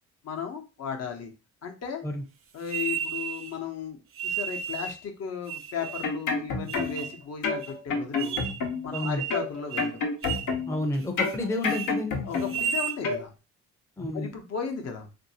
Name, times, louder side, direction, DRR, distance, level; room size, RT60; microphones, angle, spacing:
voice 1, 0.2-1.3 1.6-2.0 2.5-8.4 8.8-10.0 12.2-13.3 14.1-15.1, left 7 dB, 55° left, 4 dB, 0.8 m, -35 dB
sound 1, 2.7-3.5 4.2-5.0 5.5-6.2 6.7-7.2 7.6-7.7 8.2-8.6 8.9-9.5 9.7-9.9 10.2-10.5 10.9-11.4 11.6-11.9 12.4-13.0, right 8 dB, 45° right, 0.5 m, -33 dB
sound 2, 5.8-7.1 7.4-9.0 9.3-10.8 11.2-12.7 13.0-13.2, left 4 dB, 85° left, 0.8 m, -29 dB
voice 2, 8.9-9.2 10.7-12.2 14.0-14.3, left 1 dB, 10° left, 4 dB, 0.5 m, -30 dB
3.0 x 2.6 x 2.7 m, 0.31 s
cardioid pair, 90°, 30 cm